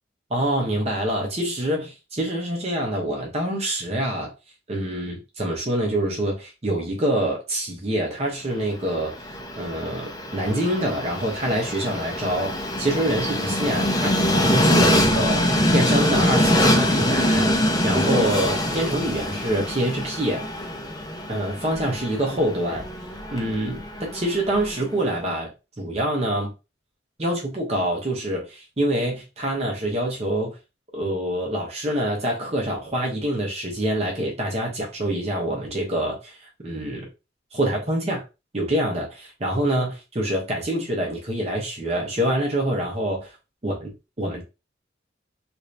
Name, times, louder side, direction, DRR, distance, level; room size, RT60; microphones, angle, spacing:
voice 1, 0.3-4.3 4.7-9.2 9.6-20.4 21.3-22.9 23.3-25.5 25.8-26.5 27.2-30.6 30.9-37.1 37.5-38.2 38.5-43.4 43.6-44.4, right 1 dB, 35° right, 0.8 m, -26 dB
Train, 8.8-24.9, left 1 dB, 20° left, 0.5 m, -24 dB
2.7 x 2.5 x 3.2 m
head